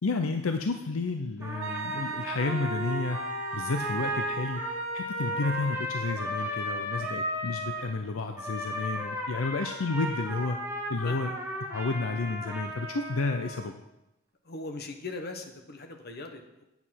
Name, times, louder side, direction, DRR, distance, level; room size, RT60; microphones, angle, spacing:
voice 1, 0.0-3.2 3.5-4.6 4.9-10.6 10.9-11.3 11.7-13.8, left 3 dB, 75° left, 6 dB, 0.6 m, -31 dB
Trumpet, 1.4-7.9 8.3-13.7, equal, 15° right, 1.7 m, -35 dB
Wind instrument woodwind instrument, 1.6-5.9, right 4 dB, 65° right, 0.8 m, -38 dB
voice 2, 11.0-11.4 14.4-16.6, left 3 dB, 50° left, 4 dB, 1.1 m, -40 dB
8.4 x 7.2 x 5.7 m, 0.92 s
head